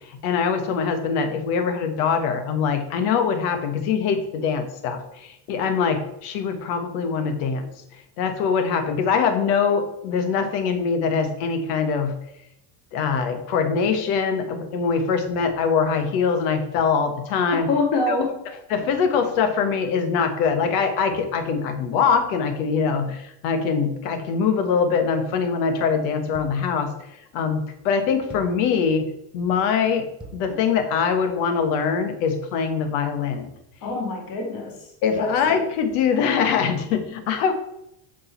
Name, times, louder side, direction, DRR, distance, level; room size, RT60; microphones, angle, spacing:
voice 1, 0.1-7.7 8.2-12.1 12.9-17.7 18.1-18.2 18.7-26.9 27.3-33.5 35.0-37.5, left 6 dB, 70° left, 7 dB, 1.5 m, -23 dB
voice 2, 17.5-18.4 33.8-34.8 35.2-35.4, left 3 dB, 45° left, 1 dB, 2.2 m, -25 dB
sound 1, 26.3-26.8 28.3-28.7 30.2-30.6, right 3 dB, ahead, 0.4 m, -42 dB
8.4 x 5.1 x 4.5 m, 0.81 s
cardioid pair, 155°, 49 cm